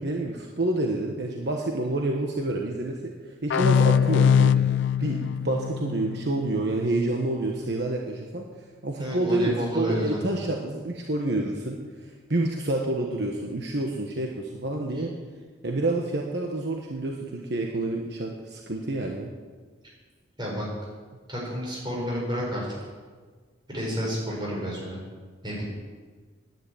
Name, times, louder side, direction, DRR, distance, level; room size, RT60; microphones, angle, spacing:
voice 1, 0.0-4.5 5.0-8.4 8.8-15.1 15.6-19.3, right 2 dB, 55° right, 0 dB, 1.3 m, -28 dB
sound 1, 3.5-6.9, left 7 dB, 70° left, 0.4 m, -22 dB
voice 2, 9.0-10.2 15.0-15.1 20.4-20.7 21.3-22.7 23.7-25.0 25.4-25.6, equal, 25° right, -4 dB, 5.6 m, -30 dB
10.5 x 10.0 x 9.0 m, 1.5 s
head